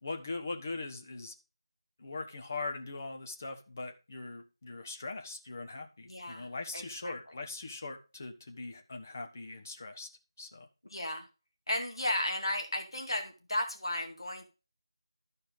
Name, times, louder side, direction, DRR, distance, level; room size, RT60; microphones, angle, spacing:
voice 1, 0.0-1.3 2.0-10.1 10.4-10.7, left 3 dB, 30° left, 4 dB, 1.1 m, -41 dB
voice 2, 6.1-6.5 6.7-7.1 10.9-11.3 11.7-14.5, left 1 dB, 65° left, 3 dB, 2.3 m, -34 dB
13.0 x 4.5 x 5.2 m, 0.32 s
figure-of-eight pair, 165°, 3 cm